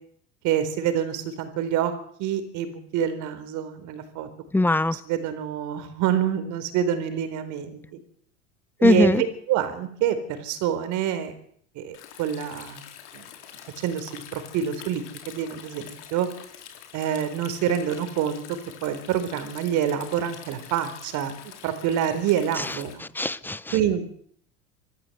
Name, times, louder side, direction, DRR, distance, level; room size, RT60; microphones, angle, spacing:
voice 1, 0.4-1.9 2.2-4.3 4.9-8.0 8.8-11.3 11.7-12.8 13.1-13.2 13.8-16.3 16.9-21.3 21.6-23.0 23.7-24.0, right 9 dB, 60° right, 10 dB, 4.3 m, -27 dB
voice 2, 4.5-5.0 8.8-9.2 22.6-22.8 23.1-23.7, left 2 dB, 5° left, 17 dB, 0.9 m, -21 dB
Stream, 11.9-22.9, left 10 dB, 85° left, 4.2 m, -45 dB
26.5 x 14.0 x 8.1 m, 0.64 s
supercardioid pair, 110°, 34 cm